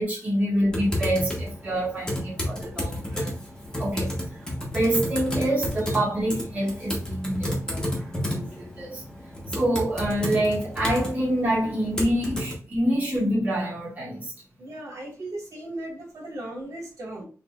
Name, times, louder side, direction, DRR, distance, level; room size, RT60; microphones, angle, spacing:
voice 1, 0.0-3.3 3.8-4.1 4.7-9.0 9.5-14.3, right 1 dB, 30° right, 1.8 m, -26 dB
Typing, 0.7-12.5, left 1 dB, 10° left, 1.2 m, -31 dB
voice 2, 14.6-17.2, right 1 dB, 80° right, 2.0 m, -37 dB
4.7 x 3.3 x 2.4 m
wide cardioid pair, 160°, 6 cm